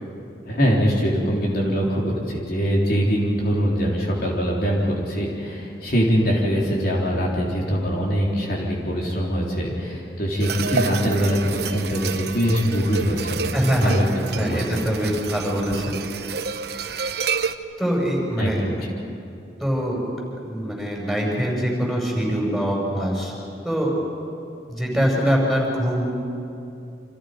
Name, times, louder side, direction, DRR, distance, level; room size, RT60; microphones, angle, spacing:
voice 1, 0.5-14.6 18.4-18.9, equal, 55° left, -3 dB, 3.8 m, -23 dB
sound 1, 10.4-17.5, right 5 dB, 65° right, 1.0 m, -29 dB
voice 2, 13.5-13.9 14.3-16.0 17.8-18.6 19.6-20.0 20.5-23.3 23.6-23.9 24.7-26.1, equal, ahead, -2 dB, 6.1 m, -23 dB
29.5 x 27.0 x 5.2 m, 2.7 s
head